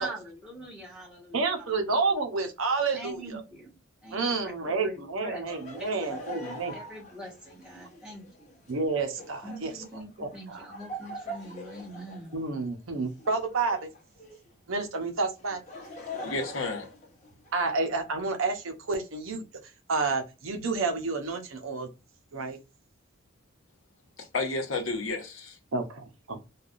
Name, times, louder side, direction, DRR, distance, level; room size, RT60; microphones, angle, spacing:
voice 1, 0.0-1.8 2.9-5.5 5.8-8.5 9.4-12.4, right 1 dB, 5° right, 1.2 m, -43 dB
voice 2, 1.3-3.4 4.1-6.7 8.7-9.7 10.2-10.6 12.3-13.8 14.7-15.6 17.5-19.4 19.9-21.9 22.3-22.6 25.7-26.4, right 3 dB, 75° right, 0.7 m, -30 dB
Laughter, 5.5-14.5 15.4-17.7, left 1 dB, 35° left, 0.7 m, -43 dB
voice 3, 16.2-16.9 24.2-25.6, left 3 dB, 75° left, 0.9 m, -31 dB
3.3 x 2.3 x 2.4 m
head